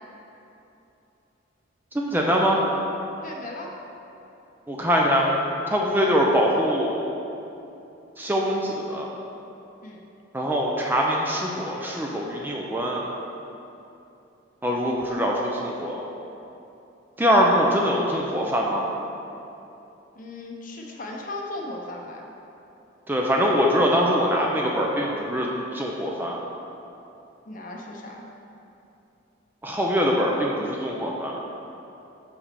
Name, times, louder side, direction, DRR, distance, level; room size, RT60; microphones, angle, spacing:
voice 1, 1.9-2.6 4.7-5.4 5.7-7.0 8.2-9.1 10.3-13.1 14.6-16.1 17.2-18.9 23.1-26.4 29.6-31.4, equal, 10° right, -2 dB, 0.5 m, -23 dB
voice 2, 3.2-3.7 9.8-10.0 20.1-22.3 27.5-28.2, left 2 dB, 40° left, 0 dB, 0.8 m, -37 dB
5.9 x 5.4 x 6.7 m, 2.9 s
head